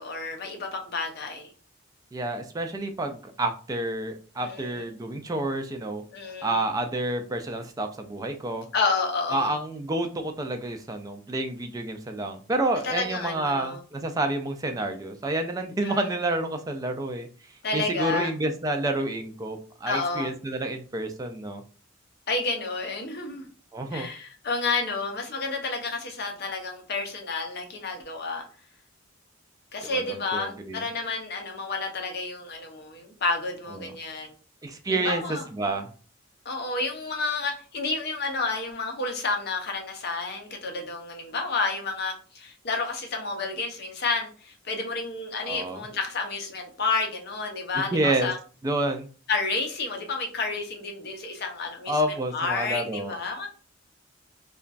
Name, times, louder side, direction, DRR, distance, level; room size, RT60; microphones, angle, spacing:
voice 1, 0.0-1.5 4.4-4.8 6.1-6.6 8.7-9.5 12.8-13.8 15.8-16.1 17.6-18.3 19.9-20.3 22.3-23.5 23.9-28.4 29.7-34.3 34.9-35.4 36.4-48.4 49.3-53.5, left 3 dB, 55° left, 0.6 m, -30 dB
voice 2, 2.1-6.0 6.4-8.7 9.3-17.3 17.7-21.6 23.7-24.1 29.8-30.8 33.8-33.9 34.6-35.9 45.4-45.8 47.8-48.3 48.6-49.1 51.9-53.2, right 2 dB, 20° right, 0.3 m, -29 dB
2.9 x 2.3 x 2.5 m
head